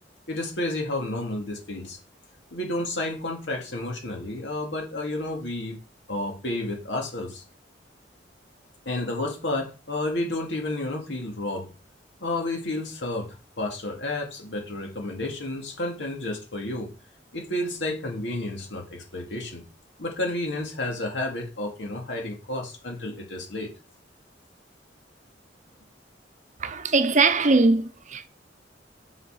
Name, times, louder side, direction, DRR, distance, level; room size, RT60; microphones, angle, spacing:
voice 1, 0.3-2.0 2.5-5.8 6.1-7.4 8.9-11.7 12.2-16.9 17.3-19.6 20.0-23.7, left 2 dB, 85° left, 2.4 m, -31 dB
voice 2, 26.6-28.3, right 3 dB, 45° right, 0.7 m, -21 dB
6.3 x 5.6 x 4.9 m
head